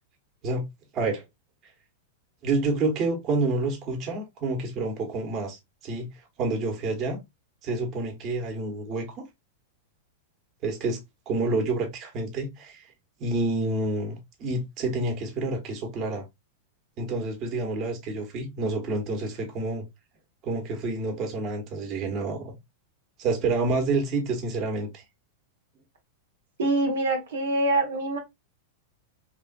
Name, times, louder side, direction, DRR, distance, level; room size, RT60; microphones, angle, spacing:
voice 1, 0.9-1.2 2.4-6.1 6.4-7.2 7.6-9.2 10.6-11.0 11.3-12.8 13.2-16.2 17.0-19.8 20.4-22.5 23.2-25.0, right 2 dB, 40° right, 1.1 m, -28 dB
voice 2, 26.6-28.2, right 2 dB, 85° right, 1.0 m, -25 dB
3.3 x 2.4 x 2.3 m
hypercardioid pair, 120°, 0 cm